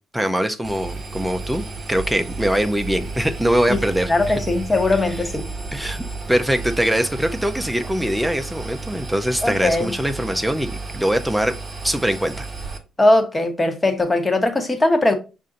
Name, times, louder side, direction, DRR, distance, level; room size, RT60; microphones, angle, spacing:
voice 1, 0.1-4.4 5.1-5.2 5.7-11.5 11.8-12.5, equal, 5° right, 0.4 m, -22 dB
Engine, 0.6-12.8, right 3 dB, 40° right, 1.2 m, -32 dB
voice 2, 4.1-5.4 9.4-9.9 13.0-15.1, left 2 dB, 20° left, 1.0 m, -19 dB
5.3 x 2.5 x 3.8 m
cardioid pair, 90°, 0 cm